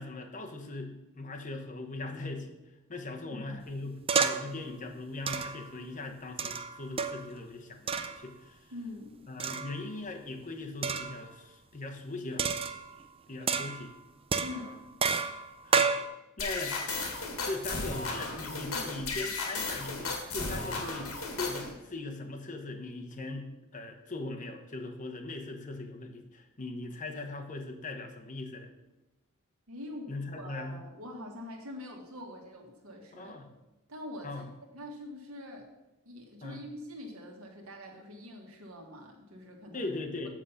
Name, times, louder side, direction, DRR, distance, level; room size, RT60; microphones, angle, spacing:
voice 1, 0.0-2.6 2.9-8.7 9.3-12.5 13.3-13.9 14.5-14.8 15.6-15.9 16.4-16.8 17.4-28.7 30.1-30.8 33.2-33.5 34.2-34.5 36.4-36.6 39.7-40.3, left 2 dB, 35° left, 4 dB, 1.0 m, -40 dB
sound 1, 4.1-4.6 5.3-5.7 6.4-7.3 7.9-8.2 9.4-9.9 10.8-11.2 12.4-13.1 13.5-13.9 14.3-16.1, right 5 dB, 25° right, 0.4 m, -30 dB
voice 2, 8.7-9.2 14.4-14.8 29.7-33.3 33.9-34.5 34.7-35.6 36.0-39.9, left 1 dB, 70° right, 1 dB, 1.7 m, -44 dB
sound 2, 16.4-21.7, left 3 dB, 80° left, 1.8 m, -35 dB
7.4 x 6.4 x 5.7 m, 0.99 s
head